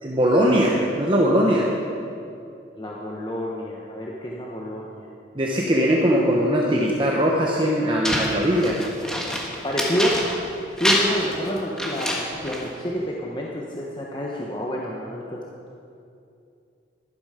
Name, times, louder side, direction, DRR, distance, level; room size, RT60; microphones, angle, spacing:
voice 1, 0.0-1.7 5.3-8.8, equal, 25° right, -2 dB, 1.0 m, -20 dB
voice 2, 2.8-5.0 9.6-10.2 10.8-15.4, equal, 25° left, -3 dB, 1.1 m, -28 dB
sound 1, 8.0-10.5 10.8-12.7, equal, 5° left, 1.5 m, -26 dB
12.5 x 12.5 x 5.1 m, 2.5 s
head